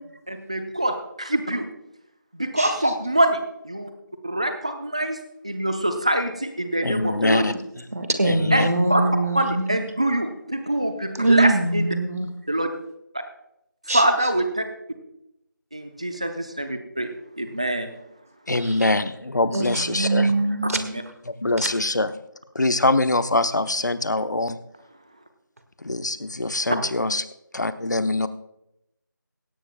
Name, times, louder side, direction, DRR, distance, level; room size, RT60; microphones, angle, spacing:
voice 1, 0.3-1.7 2.4-3.9 4.2-5.2 5.4-7.4 8.5-9.0 9.3-11.9 12.5-12.7 13.9-14.6 15.7-17.1 17.4-17.9 20.8-21.0, right 1 dB, 20° right, 7 dB, 0.7 m, -24 dB
voice 2, 6.8-7.5 8.2-8.7 18.5-20.3 21.4-22.1 22.6-24.6 25.9-27.2 27.5-28.3, left 2 dB, 60° left, 11 dB, 0.9 m, -23 dB
voice 3, 7.9-9.8 11.2-12.3 13.9-14.0 19.5-21.0 21.6-21.7, right 2 dB, 45° right, 8 dB, 1.7 m, -22 dB
16.5 x 16.5 x 2.3 m, 0.83 s
figure-of-eight pair, 175°, 11 cm